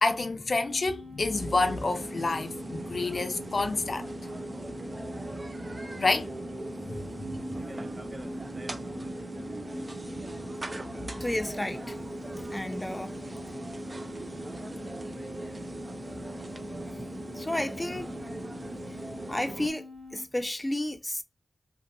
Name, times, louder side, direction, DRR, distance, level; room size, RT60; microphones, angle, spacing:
voice 1, 0.0-4.1 6.0-6.3 6.9-7.0 7.3-7.4, left 3 dB, 70° left, 0.4 m, -28 dB
sound 1, 0.7-20.3, left 3 dB, 80° right, 1.1 m, -46 dB
sound 2, 1.3-19.7, right 2 dB, 40° right, 0.4 m, -39 dB
voice 2, 11.2-12.0 12.4-13.1 16.9-17.0 17.3-18.1 18.9-19.0 19.3-19.8 20.1-21.2, left 1 dB, 20° left, 0.5 m, -32 dB
2.6 x 2.5 x 2.5 m
cardioid pair, 40°, 0 cm